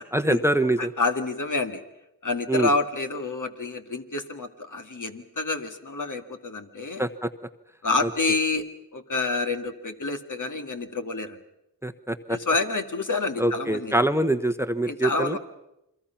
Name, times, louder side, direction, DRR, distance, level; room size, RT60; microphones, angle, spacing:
voice 1, 0.1-0.9 2.5-2.7 7.0-7.3 8.0-8.1 11.8-12.4 13.4-15.4, right 1 dB, 5° right, 11 dB, 1.1 m, -24 dB
voice 2, 0.8-1.8 2.2-7.0 7.8-8.7 8.9-11.4 12.3-14.1 14.9-15.4, left 3 dB, 55° left, 6 dB, 2.2 m, -28 dB
29.0 x 22.5 x 5.9 m, 0.87 s
cardioid pair, 40°, 37 cm